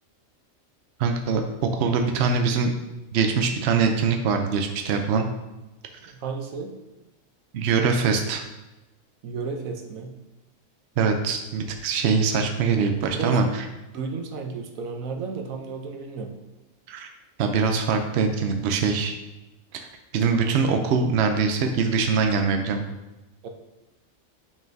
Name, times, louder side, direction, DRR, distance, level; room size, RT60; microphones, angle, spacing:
voice 1, 1.0-2.7 3.1-5.3 7.5-8.4 11.0-13.5 16.9-17.1 17.4-19.1 19.7-19.9 20.1-22.8, right 5 dB, 60° right, 5 dB, 0.8 m, -23 dB
voice 2, 6.0-6.7 9.2-10.1 13.1-13.5 13.9-16.3 23.4-23.5, right 4 dB, 75° right, 4 dB, 1.2 m, -33 dB
7.2 x 5.7 x 2.7 m, 1.0 s
omnidirectional pair, 1.4 m